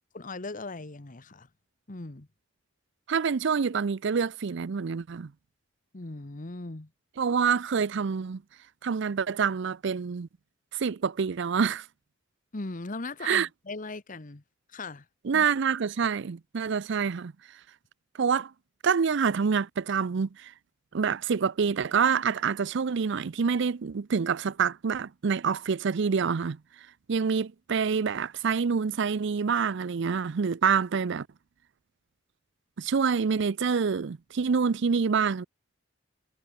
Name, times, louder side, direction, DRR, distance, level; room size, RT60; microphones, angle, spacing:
voice 1, 0.1-1.5 1.9-2.3 5.9-6.9 12.5-14.4 14.7-15.1 15.3-15.4, left 3 dB, 40° left, 1.2 m, -38 dB
voice 2, 3.1-5.3 7.2-8.4 8.8-10.3 10.7-11.9 13.2-13.5 15.2-17.3 18.2-18.5 18.8-20.5 20.9-26.6 27.1-31.3 32.8-35.4, right 6 dB, 65° right, 0.5 m, -26 dB
head